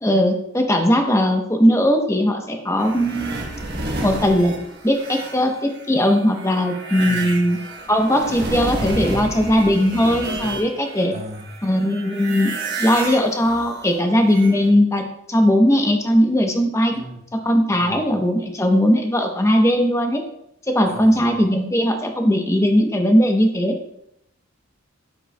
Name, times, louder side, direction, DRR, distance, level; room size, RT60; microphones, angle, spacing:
voice 1, 0.0-3.4 4.0-4.5 4.8-7.6 7.9-11.1 11.6-17.0 17.3-20.2 20.7-23.8, equal, 15° left, 4 dB, 0.8 m, -19 dB
sound 1, 2.8-11.1 11.3-14.7, right 2 dB, 50° right, 1.2 m, -30 dB
voice 2, 7.0-7.3 11.1-11.5 16.9-17.2 17.7-18.0 20.9-21.2, right 1 dB, 30° right, 4 dB, 0.8 m, -36 dB
9.1 x 7.4 x 2.2 m, 0.79 s
head